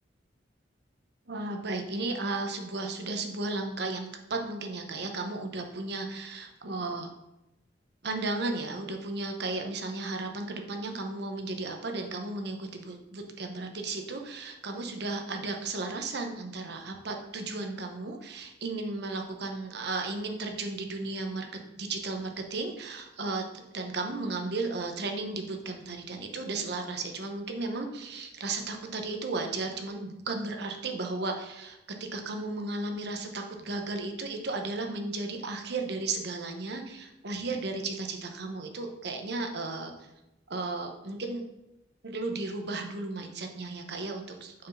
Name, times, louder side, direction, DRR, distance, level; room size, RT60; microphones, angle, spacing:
voice 1, 1.3-7.1 8.0-21.5 21.8-23.4 23.7-31.8 32.1-39.9 40.5-41.4 42.0-44.7, right 3 dB, 60° right, 3 dB, 1.0 m, -34 dB
6.3 x 4.7 x 5.6 m, 0.93 s
head